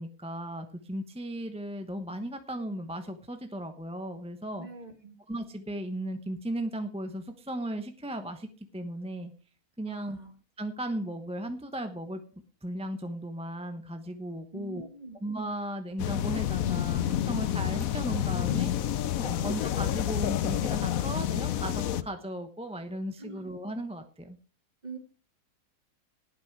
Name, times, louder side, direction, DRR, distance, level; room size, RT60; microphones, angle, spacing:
voice 1, 0.0-4.7 5.3-9.3 9.8-10.2 10.6-12.2 12.6-14.9 15.2-18.7 19.2-24.4, right 1 dB, 5° right, 7 dB, 0.8 m, -36 dB
voice 2, 4.6-5.2 9.9-10.3 14.5-15.2 19.2-19.5 23.2-23.5 24.8-25.0, right 3 dB, 30° right, 6 dB, 2.0 m, -44 dB
sound 1, 16.0-22.0, left 11 dB, 65° left, 1.1 m, -29 dB
18.5 x 6.2 x 4.7 m, 0.36 s
omnidirectional pair, 1.7 m